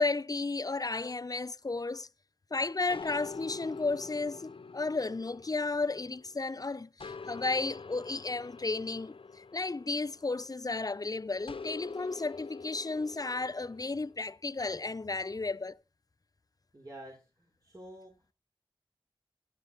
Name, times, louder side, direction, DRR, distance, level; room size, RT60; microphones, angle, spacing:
voice 1, 0.0-2.1 2.5-15.7, left 3 dB, 45° left, 0.5 m, -33 dB
sound 1, 2.9-6.5 7.0-10.7 11.5-14.1, left 4 dB, 80° left, 0.6 m, -46 dB
voice 2, 16.7-18.3, right 1 dB, 40° right, 4.3 m, -49 dB
12.0 x 11.5 x 4.1 m
wide cardioid pair, 55°, 9 cm